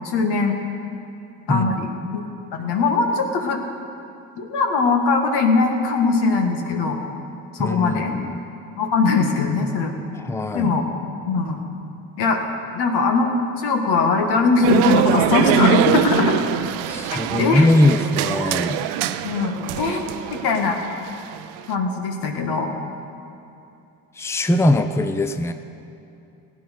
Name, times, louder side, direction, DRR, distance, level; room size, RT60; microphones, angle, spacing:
voice 1, 0.0-0.6 1.5-2.2 2.5-3.6 4.4-7.0 7.5-8.2 8.8-9.9 10.5-10.8 11.3-11.6 12.2-12.4 12.7-13.3 13.6-16.4 17.1-17.7 19.2-20.8 21.7-22.8, left 4 dB, 70° left, 3 dB, 1.8 m, -21 dB
voice 2, 7.6-8.4 10.1-10.7 16.9-18.8 24.2-25.5, left 1 dB, 5° left, 8 dB, 0.7 m, -21 dB
sound 1, 14.6-21.7, right 12 dB, 85° right, 0.6 m, -23 dB
16.0 x 9.1 x 6.5 m, 2.8 s
supercardioid pair, 65°, 40 cm